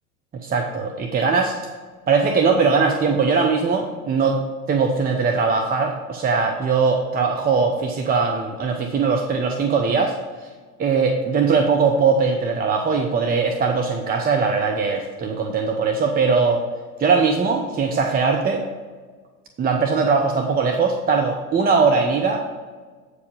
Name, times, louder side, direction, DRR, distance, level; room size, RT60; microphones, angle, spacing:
voice 1, 0.4-1.6 2.1-4.4 4.7-10.1 10.8-16.6 17.0-18.6 19.6-22.4, right 5 dB, 20° right, 3 dB, 0.8 m, -20 dB
8.3 x 5.0 x 5.2 m, 1.4 s
figure-of-eight pair, 75°, 45 cm